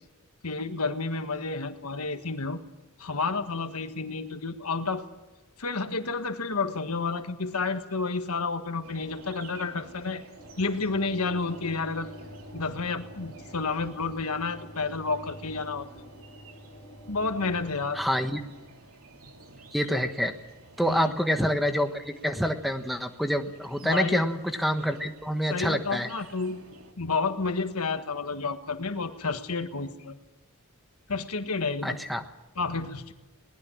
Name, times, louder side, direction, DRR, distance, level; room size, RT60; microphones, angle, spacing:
voice 1, 0.4-2.6 3.0-5.1 5.6-10.2 10.6-12.1 12.5-15.9 17.1-18.0 20.8-21.1 23.8-24.2 25.5-26.6 27.0-30.2 31.1-32.0 32.6-33.1, left 4 dB, 80° left, 8 dB, 1.6 m, -30 dB
sound 1, 8.8-26.9, right 3 dB, 70° right, 3.0 m, -51 dB
sound 2, 10.3-18.5, equal, 30° left, 4.6 m, -48 dB
voice 2, 17.9-18.4 19.7-20.3 20.8-26.1 31.8-32.2, equal, ahead, 7 dB, 1.3 m, -27 dB
21.5 x 19.5 x 7.3 m, 1.1 s
head